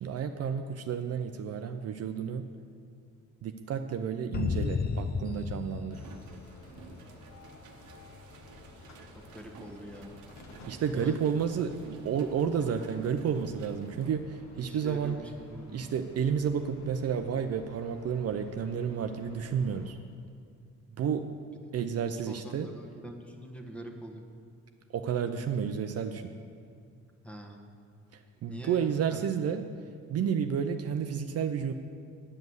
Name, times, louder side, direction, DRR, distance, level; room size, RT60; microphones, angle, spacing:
voice 1, 0.0-2.5 3.4-6.1 10.7-15.2 15.7-20.0 21.0-21.4 21.7-22.7 24.9-26.3 28.1-29.8 30.1-31.7, right 7 dB, 55° right, 7 dB, 0.5 m, -31 dB
sound 1, 4.3-7.1, left 5 dB, 35° left, 0.5 m, -33 dB
sound 2, 5.9-19.9, left 2 dB, 65° left, 1.3 m, -53 dB
sound 3, 5.9-14.1, right 5 dB, 85° right, 0.9 m, -53 dB
voice 2, 9.1-10.1 10.9-11.2 14.5-15.8 22.2-24.2 27.2-27.6 28.5-29.2, right 1 dB, 5° left, 1 dB, 1.2 m, -44 dB
9.6 x 5.3 x 7.8 m, 2.2 s
cardioid pair, 90°, 30 cm